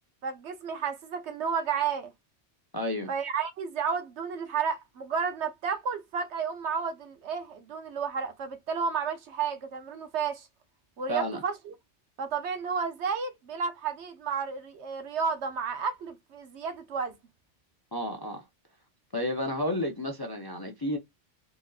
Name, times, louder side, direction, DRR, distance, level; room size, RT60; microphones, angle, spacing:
voice 1, 0.2-2.1 3.1-10.5 11.0-11.7 12.2-17.1, right 6 dB, 70° right, 1.0 m, -32 dB
voice 2, 2.7-3.1 11.1-11.4 17.9-18.4 19.1-21.0, left 1 dB, 25° left, 0.5 m, -31 dB
4.1 x 2.5 x 2.3 m
omnidirectional pair, 1.3 m